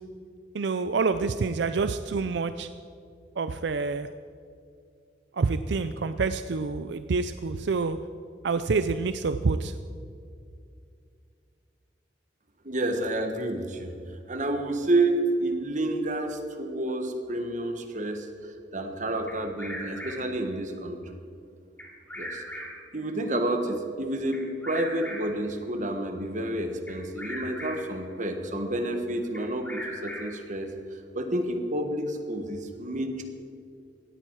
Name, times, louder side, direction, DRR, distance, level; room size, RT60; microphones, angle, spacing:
voice 1, 0.5-2.7 3.4-4.1 5.4-8.0 8.4-9.7, right 4 dB, 65° right, 10 dB, 0.5 m, -27 dB
voice 2, 12.6-13.9 14.3-18.3 18.7-21.0 22.2-22.4 22.9-30.7 31.1-33.2, right 1 dB, 40° right, 6 dB, 1.5 m, -29 dB
Bird vocalization bird call bird song, 19.3-20.4 21.8-22.9 24.3-25.5 26.9-28.0 29.3-30.5, equal, 10° left, 2.6 m, -39 dB
18.0 x 13.5 x 4.7 m, 2.4 s
head